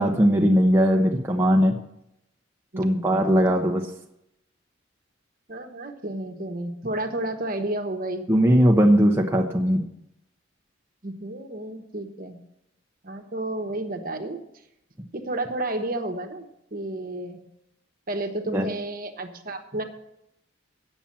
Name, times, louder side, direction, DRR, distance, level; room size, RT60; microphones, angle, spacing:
voice 1, 0.0-1.8 2.8-3.9 8.3-9.8 18.5-18.6, equal, 10° right, 1 dB, 0.8 m, -19 dB
voice 2, 2.7-3.2 5.5-8.2 11.0-12.4 13.0-14.4 15.1-17.4 18.1-19.8, right 1 dB, 45° right, 5 dB, 1.2 m, -31 dB
8.9 x 7.2 x 8.7 m, 0.82 s
head